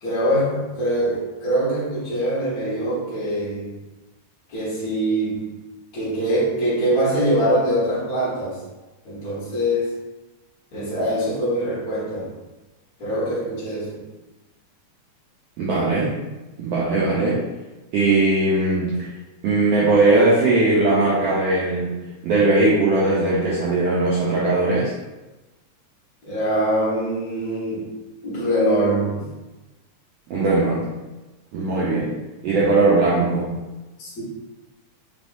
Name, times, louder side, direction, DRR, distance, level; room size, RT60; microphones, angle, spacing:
voice 1, 0.0-3.7 4.5-5.6 5.9-8.6 9.0-9.9 10.7-12.3 13.0-14.0 26.2-27.9 28.2-29.3 34.0-34.2, right 1 dB, 50° left, -9 dB, 1.0 m, -23 dB
voice 2, 15.6-16.1 16.6-17.4 17.9-19.1 19.4-21.9 22.2-24.9 30.3-30.9 31.5-32.2 32.4-33.5, right 2 dB, 80° right, -7 dB, 1.4 m, -19 dB
4.5 x 3.4 x 2.6 m, 1.1 s
omnidirectional pair, 3.6 m